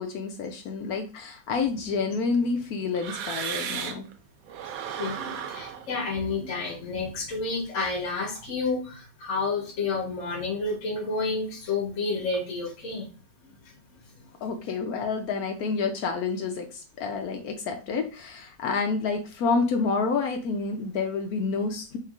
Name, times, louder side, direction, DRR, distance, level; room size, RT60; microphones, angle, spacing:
voice 1, 0.0-4.1 14.4-22.0, left 4 dB, 75° left, 4 dB, 0.8 m, -28 dB
sound 1, 1.5-4.1 4.5-7.5, right 7 dB, 85° right, 0.7 m, -37 dB
voice 2, 5.0-13.1 13.6-13.7, left 3 dB, 50° left, 0 dB, 1.2 m, -30 dB
4.5 x 3.6 x 2.4 m, 0.34 s
omnidirectional pair, 2.1 m